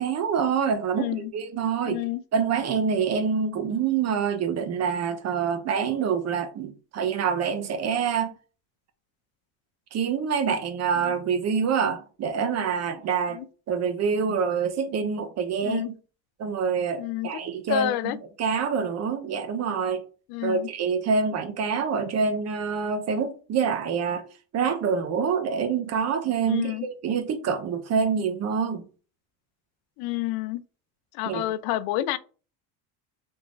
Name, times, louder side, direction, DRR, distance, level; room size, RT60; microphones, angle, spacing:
voice 1, 0.0-1.1 1.3-2.0 2.3-8.4 9.9-13.4 13.7-15.8 16.4-20.0 20.4-24.2 24.5-28.9 31.3-31.4, right 6 dB, 40° right, 0.8 m, -26 dB
voice 2, 1.0-1.3 1.9-2.2 11.0-11.1 13.3-13.4 15.6-15.9 17.0-17.4 17.7-18.2 20.3-20.7 26.5-26.9 30.0-30.6 31.1-32.2, left 14 dB, 60° left, 0.5 m, -29 dB
3.6 x 2.9 x 3.8 m
cardioid pair, 130°, 41 cm